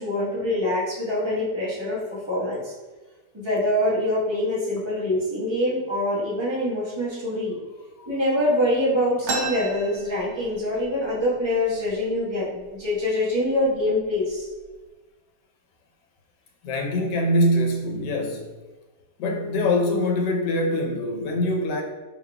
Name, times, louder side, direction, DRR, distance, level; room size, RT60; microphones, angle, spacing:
voice 1, 0.0-2.7 3.3-7.5 8.1-14.4, left 1 dB, 20° right, -7 dB, 1.2 m, -25 dB
sound 1, 9.2-10.8 11.2-11.3 11.5-12.2 12.8-12.9 13.6-13.8 14.3-14.7, right 3 dB, 55° right, 0.8 m, -32 dB
voice 2, 16.6-18.5 19.2-21.8, left 1 dB, 80° left, 1 dB, 1.4 m, -23 dB
5.0 x 4.0 x 2.3 m, 1.2 s
omnidirectional pair, 1.8 m